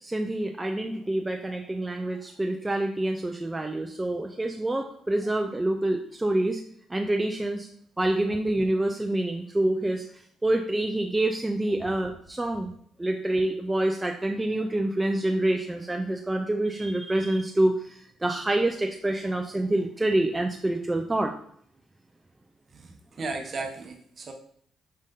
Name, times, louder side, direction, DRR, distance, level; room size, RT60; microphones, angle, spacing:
voice 1, 0.0-6.6 6.9-7.7 8.0-10.1 10.4-12.7 13.0-21.3, right 1 dB, 15° right, 3 dB, 0.4 m, -27 dB
voice 2, 22.7-24.3, right 3 dB, 45° right, 2 dB, 0.9 m, -36 dB
5.3 x 2.6 x 3.6 m, 0.64 s
cardioid pair, 90°, 0 cm